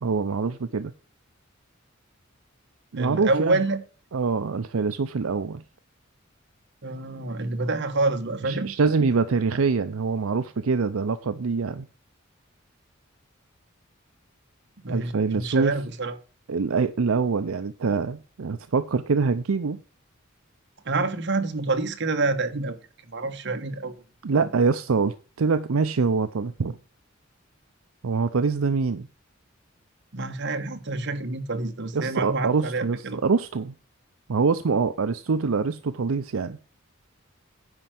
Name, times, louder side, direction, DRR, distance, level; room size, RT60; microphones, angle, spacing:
voice 1, 0.0-0.9 2.9-3.6 4.1-5.6 8.5-11.9 14.9-15.7 16.5-19.8 24.2-26.8 28.0-29.1 31.9-33.7 34.3-36.6, right 4 dB, 85° right, 0.6 m, -24 dB
voice 2, 3.0-3.8 6.8-8.7 14.8-16.1 20.8-22.8 23.1-24.0 24.3-24.5 30.1-33.2, right 3 dB, 60° right, 1.2 m, -27 dB
9.7 x 4.6 x 7.6 m
head